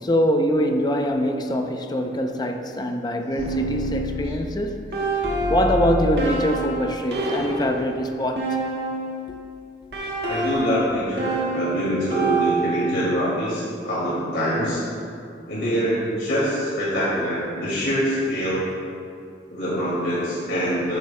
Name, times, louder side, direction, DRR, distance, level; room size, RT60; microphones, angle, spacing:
voice 1, 0.0-8.6, equal, 25° left, 4 dB, 0.5 m, -24 dB
sound 1, 3.4-9.3 9.9-13.1, right 2 dB, 60° right, 1.6 m, -27 dB
voice 2, 10.3-14.8 15.5-18.6 19.5-21.0, equal, 75° left, -8 dB, 2.1 m, -24 dB
13.0 x 9.5 x 2.2 m, 2.4 s
head